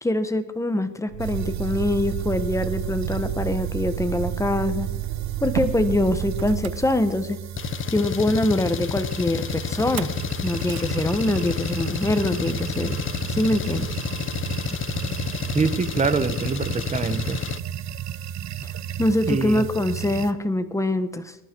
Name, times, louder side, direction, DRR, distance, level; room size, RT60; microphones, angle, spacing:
voice 1, 0.0-4.9 5.4-7.4 7.9-10.1 10.4-13.0 13.3-13.9 19.0-21.3, left 1 dB, 10° left, 10 dB, 1.2 m, -24 dB
Motor vehicle (road), 1.1-7.5 9.8-10.2 10.5-10.9, right 15 dB, 80° right, 0.9 m, -30 dB
sound 1, 1.2-20.3, right 10 dB, 50° right, 0.9 m, -34 dB
Engine, 7.6-17.6, left 9 dB, 35° left, 0.7 m, -30 dB
voice 2, 15.5-17.4 19.3-19.6, right 4 dB, 20° right, 12 dB, 1.1 m, -24 dB
20.5 x 11.0 x 4.6 m, 0.90 s
cardioid pair, 115°, 37 cm